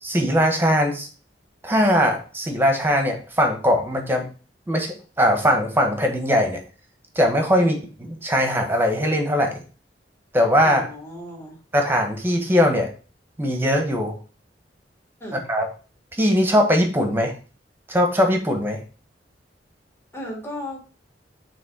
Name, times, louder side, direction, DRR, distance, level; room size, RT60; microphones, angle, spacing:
voice 1, 0.0-1.1 1.6-4.3 4.7-6.6 7.1-9.5 10.3-10.8 11.7-12.9 13.4-14.1 15.3-15.7 16.1-17.3 17.9-18.8, equal, 15° right, 3 dB, 1.3 m, -20 dB
voice 2, 10.6-11.6 15.2-15.4 20.1-20.8, left 1 dB, 15° left, -2 dB, 1.8 m, -35 dB
6.2 x 3.4 x 4.7 m, 0.36 s
head